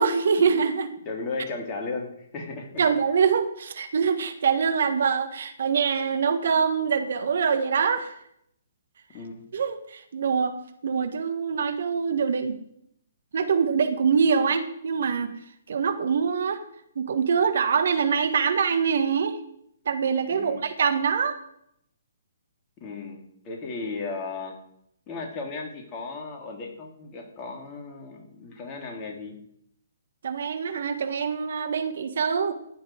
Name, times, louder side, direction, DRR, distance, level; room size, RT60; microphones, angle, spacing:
voice 1, 0.0-0.9 2.8-8.2 9.5-10.6 10.8-12.6 13.3-15.3 15.7-16.6 16.9-19.4 19.8-21.4 30.2-32.5, right 6 dB, 60° right, 9 dB, 1.5 m, -24 dB
voice 2, 1.0-2.8 9.1-9.4 20.3-20.7 22.8-24.6 25.1-29.4, left 3 dB, 25° left, 1 dB, 3.2 m, -35 dB
15.0 x 10.5 x 4.8 m, 0.72 s
figure-of-eight pair, 130°, 0 cm